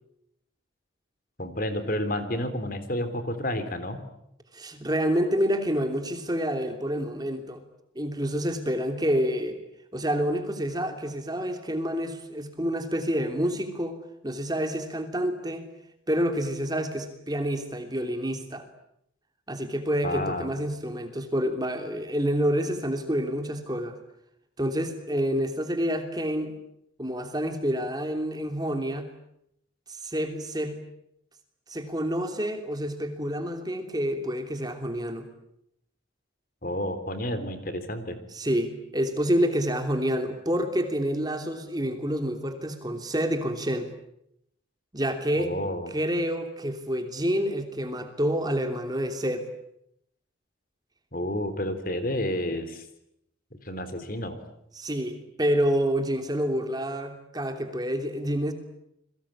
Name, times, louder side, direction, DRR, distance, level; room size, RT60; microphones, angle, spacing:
voice 1, 1.4-4.0 20.0-20.5 36.6-38.2 45.4-45.9 51.1-52.9 53.5-54.4, left 1 dB, 45° left, 10 dB, 3.6 m, -30 dB
voice 2, 4.5-7.6 7.9-9.6 9.9-14.0 14.2-15.7 16.1-18.6 19.5-24.0 24.6-26.5 27.0-29.1 29.9-30.8 31.7-35.3 38.3-43.9 44.9-45.5 45.9-49.4 54.8-58.5, equal, 20° right, 6 dB, 3.0 m, -28 dB
29.5 x 23.0 x 8.8 m, 0.77 s
head